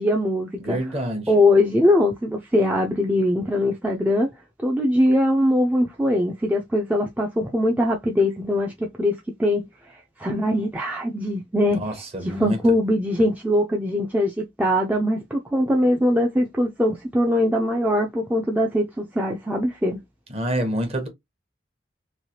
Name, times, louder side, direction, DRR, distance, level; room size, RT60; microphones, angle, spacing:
voice 1, 0.0-0.8 1.3-4.3 4.6-9.6 9.9-11.8 12.3-20.0, left 1 dB, 10° right, 0.3 m, -21 dB
voice 2, 0.6-1.3 11.7-12.6 20.3-21.1, right 1 dB, 35° right, 0.9 m, -27 dB
3.1 x 2.3 x 2.7 m
head